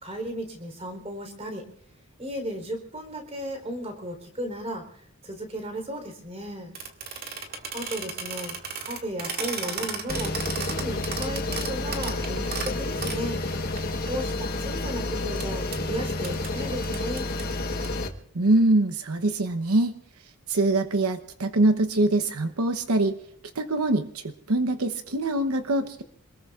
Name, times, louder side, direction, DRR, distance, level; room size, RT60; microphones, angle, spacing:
voice 1, 0.0-1.6 2.2-6.7 7.7-8.6 8.8-13.4 14.1-17.3, equal, 30° right, 4 dB, 3.9 m, -35 dB
sound 1, 6.8-13.2 13.8-13.9 14.1-14.9 15.4-15.5 15.7-15.8 16.2-16.5 16.8-17.9, right 5 dB, 45° right, 2.1 m, -34 dB
sound 2, 10.1-18.1, left 2 dB, 45° left, 1.3 m, -30 dB
voice 2, 18.3-20.0 20.5-23.2 23.5-26.0, right 2 dB, 85° right, 9 dB, 0.9 m, -23 dB
27.0 x 20.0 x 2.5 m, 0.68 s
head